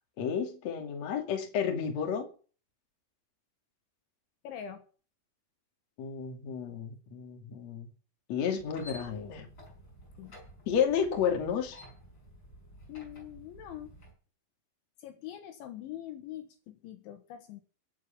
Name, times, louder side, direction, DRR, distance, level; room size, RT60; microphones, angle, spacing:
voice 1, 0.2-2.3 6.0-7.9 8.3-9.5 10.7-11.8, left 7 dB, 45° left, 2.7 m, -31 dB
voice 2, 4.4-4.8 10.2-10.4 12.9-13.9 15.0-17.6, left 11 dB, 70° left, 3.5 m, -43 dB
sound 1, 8.6-14.1, equal, 20° left, 5.9 m, -51 dB
22.5 x 8.0 x 5.9 m
omnidirectional pair, 5.9 m